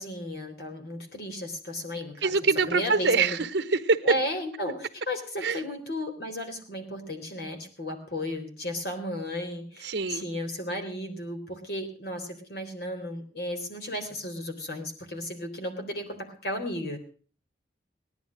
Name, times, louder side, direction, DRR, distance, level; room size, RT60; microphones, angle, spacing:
voice 1, 0.0-2.3 2.7-3.4 4.0-16.2 16.4-17.0, left 1 dB, 60° left, 4 dB, 3.8 m, -34 dB
voice 2, 2.2-4.0 5.4-5.6 9.8-10.2, right 4 dB, 80° right, 11 dB, 1.1 m, -24 dB
18.0 x 11.5 x 6.3 m, 0.41 s
head